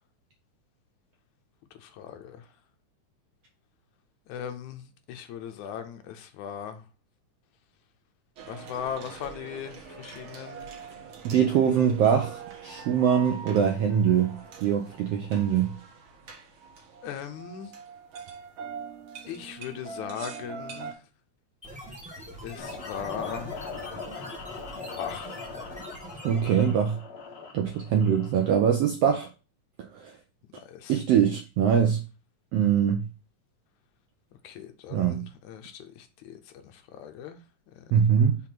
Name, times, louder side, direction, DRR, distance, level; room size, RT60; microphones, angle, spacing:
voice 1, 1.7-2.5 4.3-6.8 8.5-10.7 17.0-17.7 19.3-21.0 22.4-23.6 25.0-25.4 30.6-31.0 34.4-37.4 37.8-37.9, left 8 dB, 75° left, 2.1 m, -39 dB
sound 1, 8.4-20.9, right 5 dB, 60° right, 1.5 m, -43 dB
voice 2, 11.2-15.8 26.2-27.0 27.5-29.3 29.8-30.2 30.9-32.0 32.5-33.0 34.9-35.2 37.9-38.4, right 8 dB, 80° right, 1.4 m, -23 dB
sound 2, 21.6-26.8, equal, 5° right, 0.6 m, -43 dB
sound 3, 22.6-28.5, left 5 dB, 45° left, 1.2 m, -40 dB
6.2 x 3.6 x 5.9 m
omnidirectional pair, 3.6 m